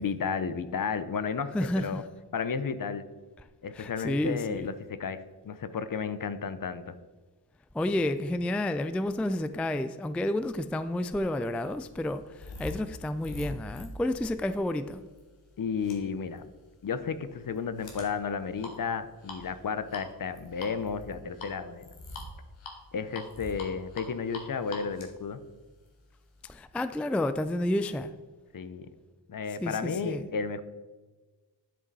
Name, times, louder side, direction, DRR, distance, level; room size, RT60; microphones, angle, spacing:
voice 1, 0.0-2.0 2.3-3.1 3.6-6.9 15.6-16.4 16.8-21.9 22.9-25.4 28.5-28.9 29.3-30.6, left 6 dB, 50° left, 12 dB, 0.7 m, -33 dB
voice 2, 1.5-2.1 3.7-4.7 7.7-15.0 26.4-28.1 29.6-30.3, left 1 dB, 5° left, 12 dB, 0.3 m, -30 dB
sound 1, 10.9-26.4, left 2 dB, 90° left, 1.7 m, -46 dB
10.5 x 5.1 x 4.1 m, 1.3 s
cardioid pair, 65°, 44 cm